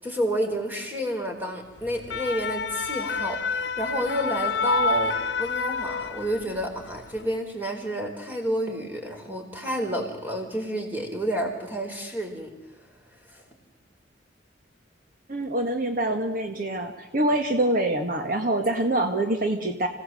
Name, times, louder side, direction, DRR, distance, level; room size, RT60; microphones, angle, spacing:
voice 1, 0.0-12.5 13.3-13.4, equal, 10° right, 2 dB, 4.4 m, -30 dB
sound 1, 1.8-6.6 7.0-7.2, left 3 dB, 70° left, 1.0 m, -28 dB
voice 2, 15.3-19.9, right 1 dB, 50° right, 5 dB, 1.7 m, -25 dB
26.5 x 17.0 x 7.8 m, 1.1 s
head